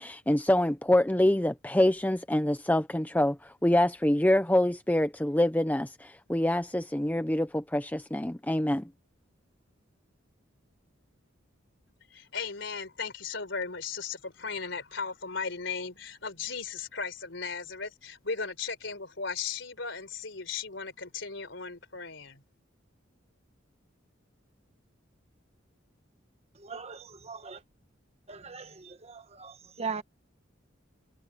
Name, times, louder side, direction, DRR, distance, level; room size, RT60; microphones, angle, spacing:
voice 1, 0.0-8.9, left 1 dB, 10° left, 0.7 m, -26 dB
voice 2, 12.1-22.4, left 5 dB, 65° left, 4.1 m, -36 dB
voice 3, 26.6-27.6 28.3-30.0, right 5 dB, 35° right, 1.3 m, -39 dB
head